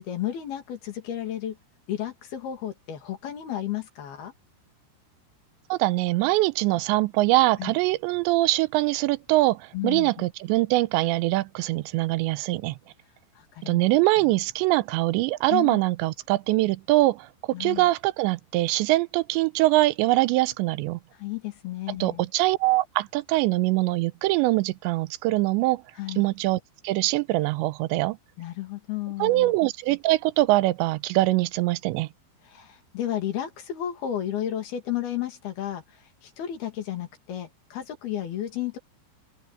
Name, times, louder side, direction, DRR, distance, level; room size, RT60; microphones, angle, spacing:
voice 1, 0.0-1.6 1.9-4.3 7.6-7.7 9.7-10.1 13.4-13.8 15.5-15.8 17.5-17.9 21.2-22.2 26.0-26.3 28.4-29.5 32.5-38.8, left 11 dB, 60° left, 4.2 m, -32 dB
voice 2, 5.7-12.8 13.7-21.0 21.9-25.8 26.2-28.2 29.2-32.1, right 19 dB, 85° right, 2.9 m, -23 dB
open air
omnidirectional pair, 5.2 m